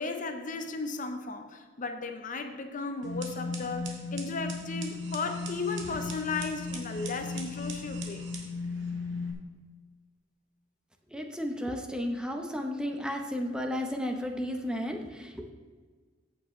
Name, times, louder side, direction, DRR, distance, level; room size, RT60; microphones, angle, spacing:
voice 1, 0.0-8.3, left 3 dB, 45° left, 7 dB, 0.8 m, -35 dB
sound 1, 3.0-9.3, left 3 dB, 70° right, 1.7 m, -36 dB
voice 2, 11.1-15.5, equal, 5° right, 3 dB, 0.8 m, -33 dB
14.5 x 7.9 x 3.2 m, 1.5 s
head